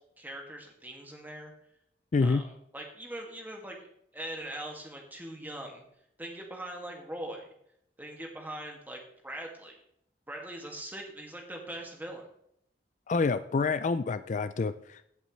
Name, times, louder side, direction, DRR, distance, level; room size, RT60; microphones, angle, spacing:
voice 1, 0.2-1.5 2.2-5.8 6.2-7.4 8.0-9.8 10.3-12.3, right 1 dB, 10° right, 1 dB, 2.1 m, -41 dB
voice 2, 2.1-2.4 13.1-15.1, left 4 dB, 45° left, 13 dB, 0.4 m, -28 dB
16.0 x 8.1 x 3.2 m, 0.73 s
head